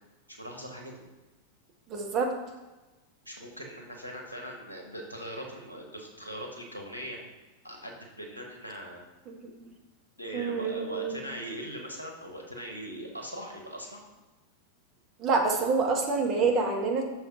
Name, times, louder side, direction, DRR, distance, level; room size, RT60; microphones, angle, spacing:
voice 1, 0.3-1.0 3.2-7.2 7.6-9.0 10.2-14.0, equal, 85° left, 0 dB, 1.1 m, -40 dB
voice 2, 1.9-2.3 9.3-9.5 10.3-11.1 15.2-17.0, right 4 dB, 30° right, 1 dB, 1.0 m, -27 dB
6.1 x 3.3 x 4.8 m, 1.1 s
figure-of-eight pair, 90°, 0 cm